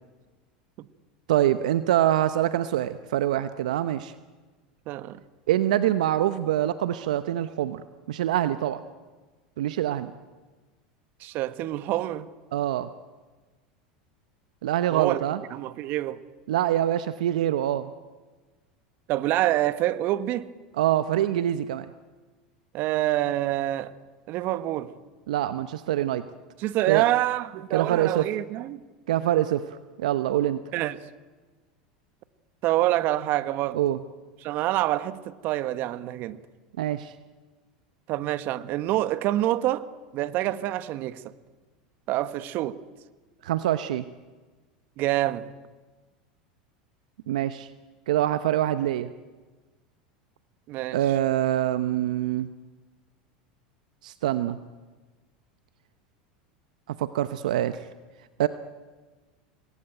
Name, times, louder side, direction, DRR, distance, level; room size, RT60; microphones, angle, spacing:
voice 1, 1.3-4.1 5.5-7.8 8.1-8.8 9.6-10.1 12.5-12.9 14.6-15.4 16.5-17.9 20.8-21.9 25.3-26.2 26.9-27.0 27.7-28.3 29.1-29.6 30.0-30.6 33.7-34.0 36.8-37.1 43.4-44.1 47.3-47.7 48.1-49.1 50.9-52.5 54.0-54.6 56.9-57.8 58.4-58.5, right 12 dB, 75° right, 0.9 m, -25 dB
voice 2, 4.9-5.2 11.2-12.3 14.9-15.2 15.5-16.2 19.1-20.5 22.7-23.9 24.3-24.9 26.6-28.8 30.7-31.1 32.6-33.8 34.4-36.4 38.1-39.8 40.1-41.2 42.1-42.8 45.0-45.5 50.7-51.0, right 15 dB, 50° right, 1.3 m, -26 dB
27.0 x 20.5 x 9.1 m
hypercardioid pair, 90°, 4 cm